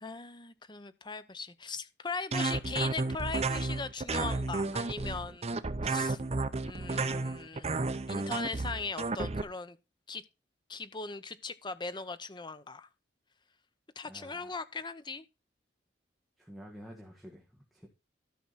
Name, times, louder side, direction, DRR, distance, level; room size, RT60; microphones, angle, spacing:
voice 1, 0.0-5.5 5.8-6.2 6.6-7.8 8.1-9.8 10.1-10.2 10.7-12.9 14.0-15.3, left 4 dB, 25° left, 0.7 m, -39 dB
sound 1, 2.3-9.4, right 3 dB, 35° right, 0.7 m, -32 dB
voice 2, 14.1-14.6 16.4-17.9, equal, ahead, 1.6 m, -50 dB
13.0 x 6.0 x 4.0 m
head